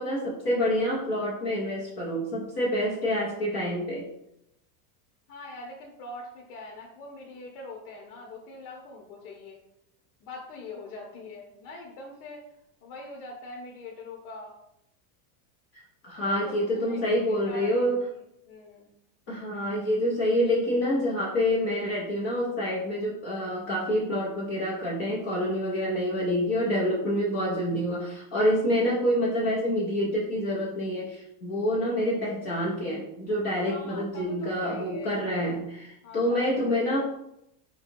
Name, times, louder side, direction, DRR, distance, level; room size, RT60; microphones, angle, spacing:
voice 1, 0.0-4.1 16.0-18.1 19.3-37.0, equal, 25° left, -5 dB, 0.3 m, -27 dB
voice 2, 5.3-9.6 10.2-12.4 12.8-14.6 16.2-17.1 17.4-17.9 18.5-18.9 33.6-35.2 36.0-36.4 36.7-37.0, left 2 dB, 65° left, -1 dB, 0.9 m, -43 dB
4.7 x 2.8 x 2.6 m, 0.80 s
supercardioid pair, 160°, 48 cm